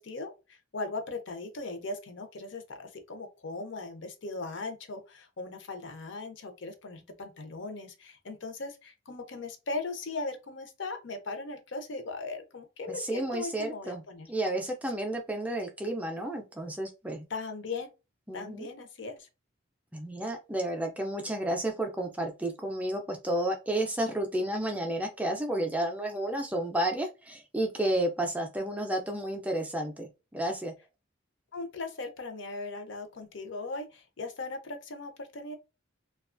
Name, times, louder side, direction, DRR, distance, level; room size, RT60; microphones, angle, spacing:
voice 1, 0.0-14.3 17.3-17.9 18.3-19.3 31.5-35.6, left 3 dB, 60° left, 0.5 m, -38 dB
voice 2, 12.9-14.0 14.3-17.3 18.3-18.7 19.9-30.7, right 1 dB, 5° right, 0.3 m, -31 dB
2.8 x 2.3 x 2.4 m
head